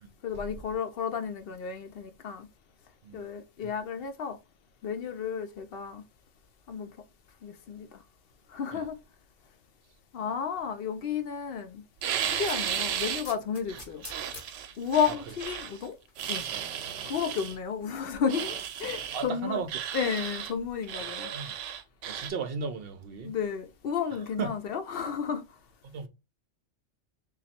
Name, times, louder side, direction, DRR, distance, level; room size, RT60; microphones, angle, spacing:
voice 1, 0.2-2.5 3.1-4.4 4.8-6.0 6.7-6.9 7.4-7.9 8.5-9.0 10.1-11.8 12.4-14.0 14.8-16.0 16.3-16.5 17.0-18.5 18.8-19.6 19.9-21.3 23.2-25.4, left 7 dB, 60° left, 0.7 m, -32 dB
sound 1, 12.0-13.3 13.7-15.8 16.2-17.6 18.3-19.3 19.7-20.5 20.8-22.3, right 9 dB, 90° right, 0.9 m, -34 dB
sound 2, 12.2-14.5 16.1-16.2, left 1 dB, 35° left, 0.9 m, -43 dB
voice 2, 19.1-19.7 20.0-20.1 20.9-21.5 22.1-23.3 24.4-24.5 25.8-26.1, right 5 dB, 60° right, 0.8 m, -36 dB
3.0 x 2.4 x 4.2 m
omnidirectional pair, 1.2 m